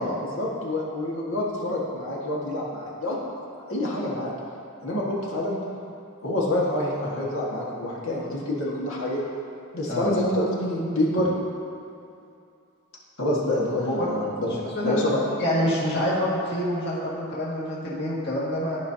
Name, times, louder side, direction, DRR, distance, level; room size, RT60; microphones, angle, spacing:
voice 1, 0.0-3.2 3.7-4.3 4.8-5.6 6.2-9.2 9.7-11.3 13.2-15.2, left 1 dB, 75° left, -5 dB, 1.7 m, -27 dB
voice 2, 13.8-14.1 14.7-15.1 15.4-18.8, equal, 55° left, -8 dB, 2.0 m, -26 dB
14.5 x 5.3 x 2.8 m, 2.6 s
head